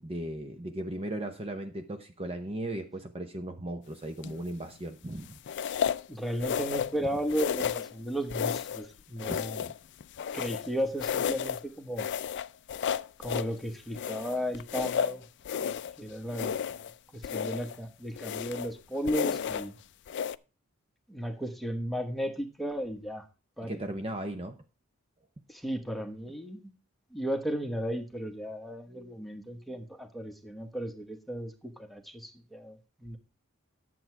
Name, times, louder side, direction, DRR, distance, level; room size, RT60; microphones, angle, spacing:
voice 1, 0.0-5.4 9.2-9.7 23.7-24.6, right 1 dB, 30° right, 6 dB, 0.8 m, -37 dB
sound 1, 4.2-4.5 5.5-6.1 6.4-7.0 7.3-7.9 8.3-8.9 9.2-10.7 11.0-11.6 12.0-13.5 13.9-15.9 16.3-16.9 17.2-17.8 18.2-18.7 19.1-19.7 20.1-20.3, left 7 dB, 55° left, 0.4 m, -32 dB
voice 2, 6.1-9.6 10.3-12.1 13.2-15.2 15.5-16.6 17.1-19.8 21.1-23.2 23.6-23.8 25.5-26.6 27.1-33.2, equal, ahead, 4 dB, 1.2 m, -35 dB
10.5 x 7.7 x 4.6 m, 0.32 s
head